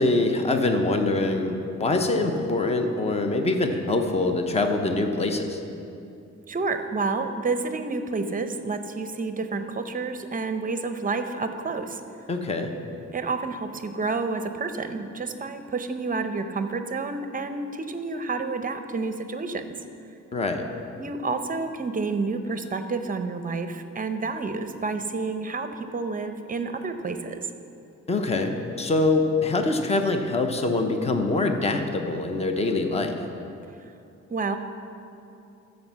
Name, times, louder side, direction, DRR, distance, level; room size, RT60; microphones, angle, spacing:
voice 1, 0.0-5.6 12.3-12.7 20.3-20.7 28.1-33.2, left 2 dB, 20° left, 5 dB, 0.7 m, -24 dB
voice 2, 6.5-12.0 13.1-19.6 21.0-27.4 34.3-34.6, right 3 dB, 30° right, 8 dB, 0.6 m, -29 dB
13.5 x 5.2 x 7.3 m, 2.7 s
wide cardioid pair, 155°, 29 cm